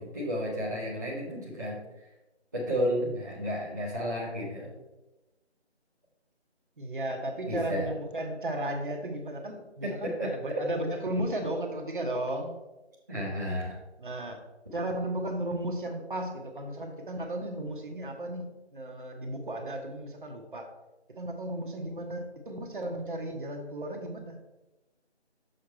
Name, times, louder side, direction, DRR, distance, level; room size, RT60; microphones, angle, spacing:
voice 1, 0.0-2.1 2.5-4.8 7.5-7.9 9.8-10.6 13.1-13.8, equal, 15° right, -8 dB, 0.8 m, -32 dB
voice 2, 6.8-12.5 14.0-14.4 14.7-20.7 21.2-24.4, right 1 dB, 50° right, 3 dB, 1.1 m, -34 dB
6.6 x 5.0 x 4.3 m, 1.0 s
figure-of-eight pair, 165°, 34 cm